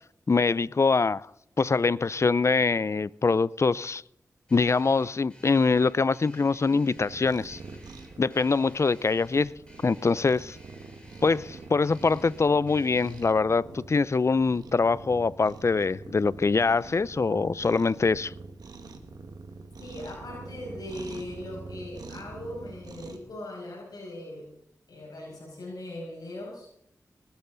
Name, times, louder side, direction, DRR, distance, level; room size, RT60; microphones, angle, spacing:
voice 1, 0.3-1.3 1.6-4.0 4.5-7.6 8.2-9.5 9.8-10.6 11.2-18.3, left 4 dB, 45° left, 0.5 m, -24 dB
sound 1, 4.5-13.2, equal, 15° left, 7.1 m, -54 dB
Cat, 7.0-23.2, right 3 dB, 80° right, 1.7 m, -45 dB
voice 2, 19.8-24.5 24.9-26.7, left 1 dB, 80° left, 6.0 m, -39 dB
19.5 x 13.5 x 4.0 m
cardioid pair, 55°, 7 cm